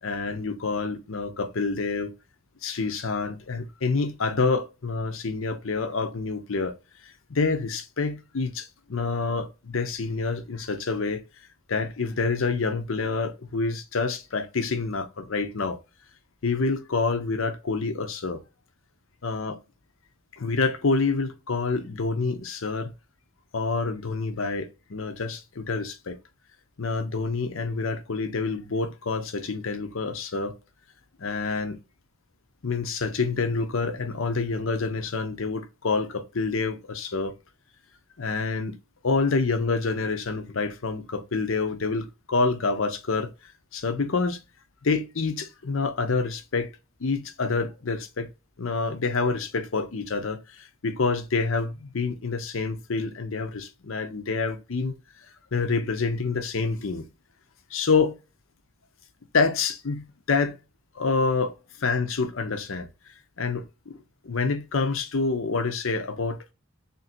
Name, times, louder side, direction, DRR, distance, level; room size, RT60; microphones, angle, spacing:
voice 1, 0.0-2.1 2.6-6.7 7.0-11.2 11.7-15.8 16.4-18.4 19.2-19.6 20.3-22.9 23.5-26.2 26.8-30.5 31.2-31.8 32.6-37.3 38.2-38.8 39.0-44.4 44.8-46.7 47.0-48.3 48.6-55.0 55.5-57.1 57.7-58.2 59.3-60.6 60.9-62.9 63.4-63.7 64.2-66.5, left 4 dB, 70° left, 0.7 m, -27 dB
3.6 x 2.6 x 4.2 m
head